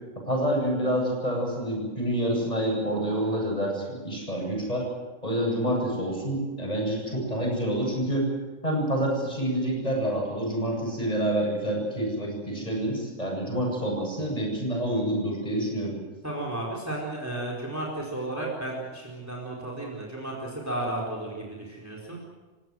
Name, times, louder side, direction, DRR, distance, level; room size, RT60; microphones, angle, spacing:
voice 1, 0.3-4.9 5.2-8.3 8.6-15.9, right 1 dB, 30° left, -1 dB, 8.2 m, -27 dB
voice 2, 16.2-22.2, right 1 dB, 10° right, -2 dB, 4.5 m, -33 dB
28.5 x 17.0 x 7.7 m, 1.2 s
omnidirectional pair, 1.3 m